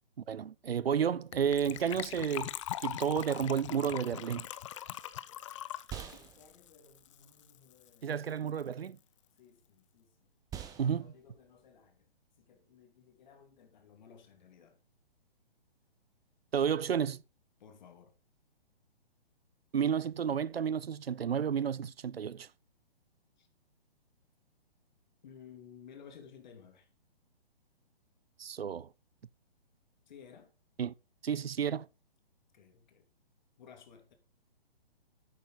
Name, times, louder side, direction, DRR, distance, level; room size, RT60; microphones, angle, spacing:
voice 1, 0.3-2.5 2.8-4.5 8.0-9.0 10.8-11.1 16.5-17.2 19.7-22.5 28.4-28.9 30.8-30.9 31.2-31.9, right 7 dB, 80° right, 0.5 m, -31 dB
Gurgling / Trickle dribble / Fill (with liquid), 1.3-7.6 7.8-7.9 8.1-8.3 8.6-8.7, left 12 dB, 30° left, 0.6 m, -41 dB
sound 1, 4.6-14.1, right 9 dB, 10° right, 1.0 m, -51 dB
voice 2, 6.1-8.3 9.4-10.3 11.0-12.1 12.4-14.8 17.6-18.1 23.4-23.5 25.2-26.9 30.1-30.5 32.5-33.0 33.6-34.1, left 7 dB, 50° left, 2.8 m, -56 dB
11.0 x 8.3 x 4.0 m
figure-of-eight pair, 130°, 30 cm